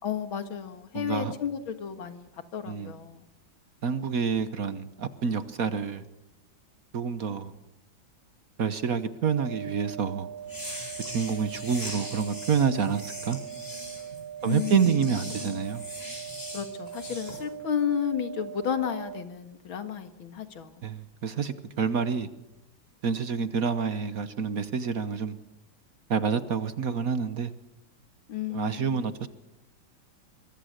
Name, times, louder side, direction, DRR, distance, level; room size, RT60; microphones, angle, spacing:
voice 1, 0.0-3.2 14.4-15.6 16.5-20.8 28.3-29.0, left 8 dB, 85° left, 2.5 m, -33 dB
voice 2, 0.9-1.3 2.6-2.9 3.8-6.0 6.9-7.5 8.6-10.3 11.1-13.4 14.4-15.8 20.8-22.3 23.0-25.4 26.1-27.5 28.5-29.3, right 6 dB, 50° right, 1.3 m, -28 dB
sound 1, 9.2-19.2, right 9 dB, 85° right, 2.1 m, -41 dB
sound 2, 10.4-17.4, left 1 dB, 30° left, 7.9 m, -41 dB
24.0 x 23.5 x 6.6 m
omnidirectional pair, 2.2 m